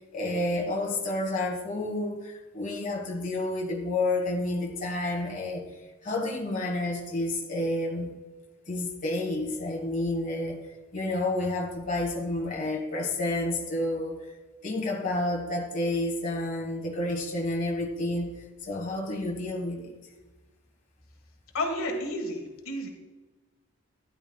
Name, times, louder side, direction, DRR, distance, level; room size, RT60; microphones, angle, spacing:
voice 1, 0.1-5.6 6.0-8.1 8.7-10.6 10.9-14.2 14.6-19.9, left 2 dB, 35° left, -1 dB, 1.6 m, -30 dB
voice 2, 21.5-22.9, left 1 dB, 70° left, 3 dB, 1.5 m, -31 dB
12.5 x 10.5 x 2.3 m, 1.2 s
head